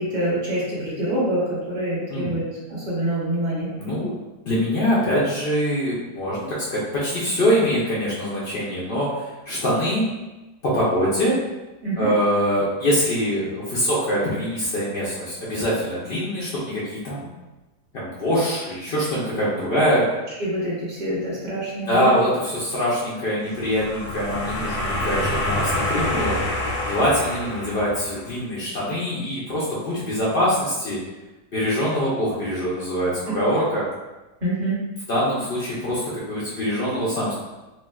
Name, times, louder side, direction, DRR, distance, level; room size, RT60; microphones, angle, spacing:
voice 1, 0.0-2.4 2.7-3.7 11.8-12.1 20.4-22.1 34.4-34.8, right 1 dB, 35° right, -7 dB, 0.7 m, -26 dB
voice 2, 3.8-4.1 4.4-10.1 10.6-11.3 12.0-17.3 17.9-20.0 21.9-26.4 26.8-31.0 31.5-33.8 35.1-37.3, equal, 65° left, -8 dB, 0.5 m, -23 dB
sound 1, 23.6-28.3, left 1 dB, 90° left, 1.2 m, -27 dB
3.2 x 2.5 x 2.3 m, 1.1 s
omnidirectional pair, 1.8 m